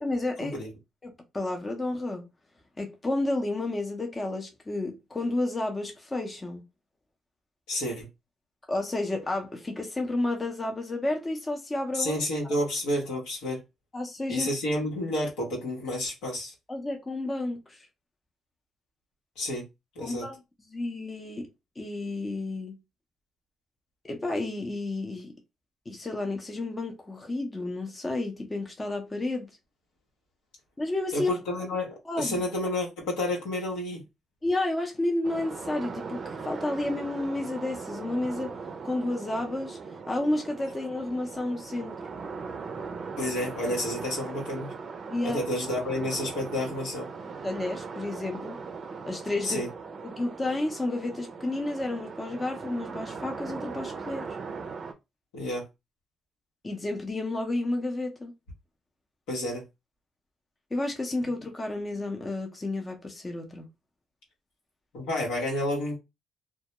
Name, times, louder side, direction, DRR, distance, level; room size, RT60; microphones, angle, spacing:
voice 1, 0.0-0.6 1.0-2.2 2.8-6.6 8.7-12.1 13.9-14.5 16.7-17.9 20.0-20.4 20.7-21.5 21.8-22.8 24.0-25.3 25.9-29.5 30.8-31.3 32.1-32.5 34.4-38.5 38.8-39.8 40.1-41.9 45.1-45.4 47.4-48.6 49.1-49.6 50.0-54.3 56.6-58.3 60.7-63.7, left 2 dB, 25° left, 0.6 m, -31 dB
voice 2, 7.7-8.1 11.9-13.6 14.3-16.5 19.4-19.6 19.9-20.3 31.1-34.0 43.2-44.7 45.2-47.1 49.4-49.7 55.3-55.6 59.3-59.6 64.9-66.0, left 1 dB, 90° left, 1.0 m, -30 dB
sound 1, 35.2-54.9, right 5 dB, 50° right, 0.4 m, -39 dB
2.2 x 2.1 x 2.8 m
supercardioid pair, 65°, 0 cm